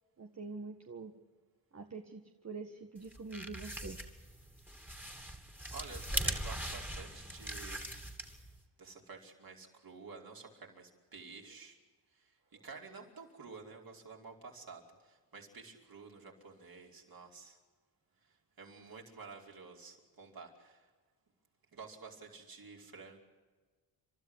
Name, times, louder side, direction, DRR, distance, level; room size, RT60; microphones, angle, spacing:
voice 1, 0.2-1.1 1.7-4.0, right 4 dB, 35° right, 4 dB, 1.8 m, -45 dB
sound 1, 3.0-8.6, right 1 dB, 5° right, 3.0 m, -40 dB
voice 2, 5.7-7.9 8.4-8.5 8.8-11.8 12.2-12.3 12.6-17.6 18.6-20.9 21.7-23.2, right 4 dB, 50° right, 0 dB, 5.2 m, -51 dB
29.5 x 12.5 x 9.7 m, 1.4 s
supercardioid pair, 60°, 44 cm